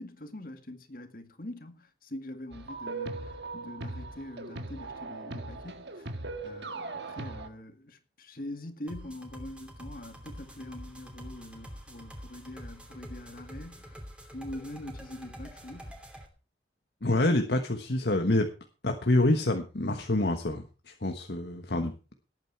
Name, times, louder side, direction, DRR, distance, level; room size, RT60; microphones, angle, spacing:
voice 1, 0.0-3.3 3.5-6.2 6.4-14.1 14.3-16.0, left 1 dB, 50° left, 2.1 m, -43 dB
sound 1, 2.5-7.5, right 3 dB, 80° right, 1.8 m, -39 dB
sound 2, 8.9-16.3, equal, 5° right, 2.9 m, -46 dB
voice 2, 17.0-18.5 18.8-21.9, left 2 dB, 70° left, 1.3 m, -27 dB
18.5 x 9.2 x 4.7 m
head